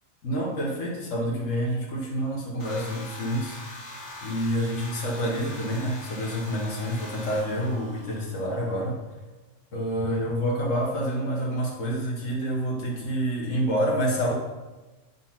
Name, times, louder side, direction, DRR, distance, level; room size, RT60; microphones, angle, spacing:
voice 1, 0.2-3.6 4.2-9.0 9.7-14.3, equal, 80° left, -3 dB, 1.6 m, -28 dB
sound 1, 2.6-8.7, left 1 dB, 60° left, 1.4 m, -42 dB
9.0 x 4.1 x 5.8 m, 1.2 s
omnidirectional pair, 1.3 m